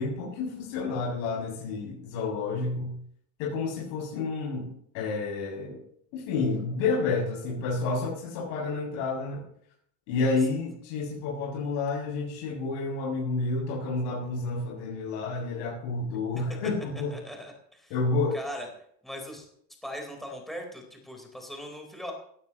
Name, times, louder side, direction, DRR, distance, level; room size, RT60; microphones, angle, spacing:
voice 1, 0.0-3.0 3.4-5.8 6.1-9.5 10.1-17.1 17.9-18.4, left 3 dB, 75° left, -3 dB, 7.4 m, -30 dB
voice 2, 17.1-17.9 18.3-18.7 19.0-19.5 19.8-22.1, equal, ahead, 1 dB, 4.3 m, -39 dB
17.5 x 17.0 x 3.1 m, 0.66 s
cardioid pair, 140°, 47 cm